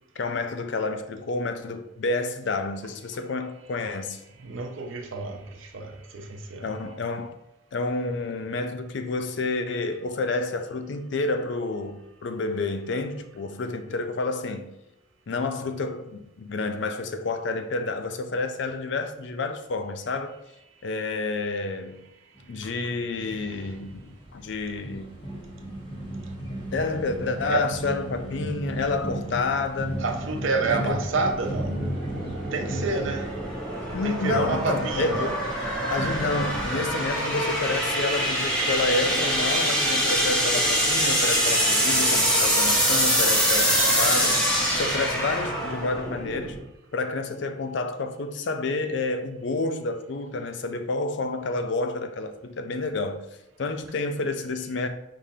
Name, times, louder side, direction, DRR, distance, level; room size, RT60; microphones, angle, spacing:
voice 1, 0.2-4.2 6.6-7.4 7.7-14.7 15.3-20.3 20.8-22.1 22.5-25.2 26.7-30.0 30.6-31.0 33.9-35.4 35.9-46.6 46.9-53.3 53.6-54.9, left 3 dB, 60° left, 0.4 m, -29 dB
voice 2, 4.4-6.7 27.5-27.6 30.0-31.8 32.5-33.3 34.0-35.3, right 4 dB, 70° right, 0.7 m, -29 dB
sound 1, 22.3-36.9, right 1 dB, 25° left, 1.3 m, -35 dB
sound 2, 31.2-46.6, equal, 5° left, 1.0 m, -25 dB
5.0 x 3.7 x 2.7 m
head